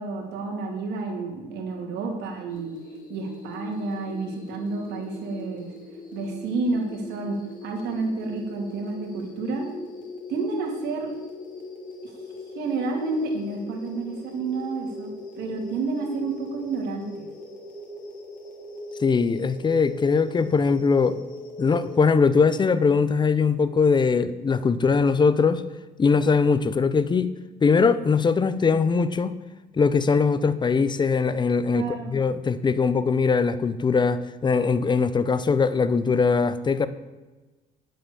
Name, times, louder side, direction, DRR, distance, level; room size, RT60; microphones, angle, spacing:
voice 1, 0.0-2.8 3.1-5.7 6.1-9.7 10.3-11.1 12.0-12.1 12.5-15.1 15.4-17.2 31.7-32.1, right 3 dB, 80° right, 2.6 m, -30 dB
sound 1, 2.5-22.0, left 2 dB, 50° left, 3.0 m, -40 dB
voice 2, 19.0-21.2 21.6-25.6 26.0-27.3 27.6-29.3 29.7-36.9, left 5 dB, 25° left, 0.8 m, -21 dB
9.5 x 7.7 x 6.9 m
cardioid pair, 110°, 17 cm